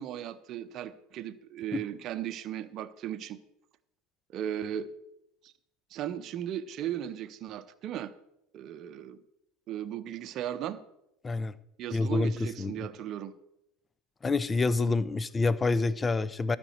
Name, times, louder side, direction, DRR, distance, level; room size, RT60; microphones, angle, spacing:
voice 1, 0.0-3.4 4.3-4.9 5.4-5.5 5.9-8.1 8.5-9.2 9.7-10.8 11.8-13.3, right 10 dB, 50° right, 10 dB, 0.7 m, -36 dB
voice 2, 11.9-12.9 14.2-16.6, left 3 dB, 20° left, 17 dB, 0.6 m, -27 dB
12.5 x 5.2 x 7.9 m, 0.84 s
hypercardioid pair, 80°, 0 cm